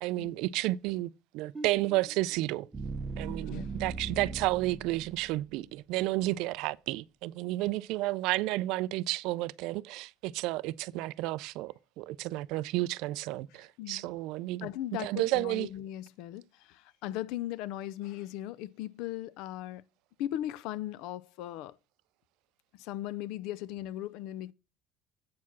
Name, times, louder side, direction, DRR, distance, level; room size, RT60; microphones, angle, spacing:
voice 1, 0.0-2.7 3.2-14.7 15.0-15.7, right 18 dB, 65° right, 0.3 m, -32 dB
sound 1, 1.6-5.6, right 4 dB, 15° right, 0.6 m, -40 dB
voice 2, 3.3-3.8 13.5-14.1 14.6-19.8 20.2-21.8 22.7-24.5, left 13 dB, 70° left, 0.5 m, -38 dB
8.4 x 4.6 x 6.0 m
cardioid pair, 150°, 0 cm